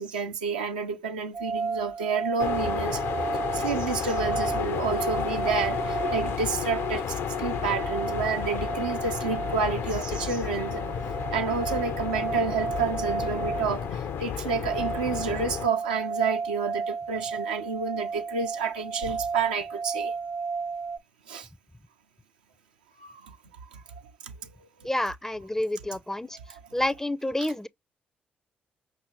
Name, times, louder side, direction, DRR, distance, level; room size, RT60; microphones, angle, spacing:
voice 1, 0.0-3.0 3.5-10.8 11.3-20.1 21.3-21.5 23.0-23.3 23.7-23.8 24.2-24.5 24.8-24.9, right 5 dB, 85° right, 0.5 m, -30 dB
sound 1, 1.3-21.0, right 5 dB, 45° right, 0.7 m, -33 dB
sound 2, 2.4-15.7, left 8 dB, 60° left, 0.5 m, -32 dB
voice 2, 24.8-26.4 26.7-27.7, left 1 dB, 10° left, 0.4 m, -29 dB
5.6 x 2.6 x 2.9 m
figure-of-eight pair, 40°, 5 cm